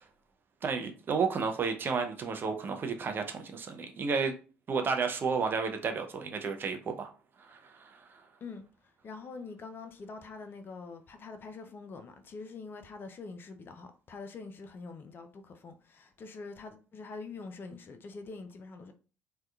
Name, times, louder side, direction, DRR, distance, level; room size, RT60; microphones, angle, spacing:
voice 1, 0.6-4.3 4.7-7.1 7.5-8.0, right 5 dB, 40° right, 0.5 m, -32 dB
voice 2, 9.0-18.9, left 4 dB, 40° left, 0.4 m, -45 dB
2.7 x 2.2 x 2.3 m
figure-of-eight pair, 55°, 6 cm